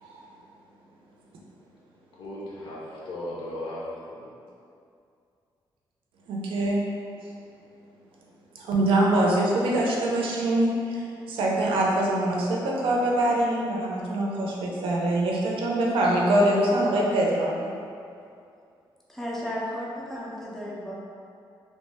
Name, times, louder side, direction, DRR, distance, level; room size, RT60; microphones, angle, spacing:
voice 1, 2.1-4.3, left 1 dB, 70° left, -6 dB, 0.6 m, -36 dB
voice 2, 6.3-6.8 8.6-17.7, right 1 dB, 90° right, -2 dB, 0.5 m, -24 dB
voice 3, 19.1-20.9, equal, 5° left, -5 dB, 0.4 m, -34 dB
2.8 x 2.1 x 3.3 m, 2.5 s
wide cardioid pair, 175°, 9 cm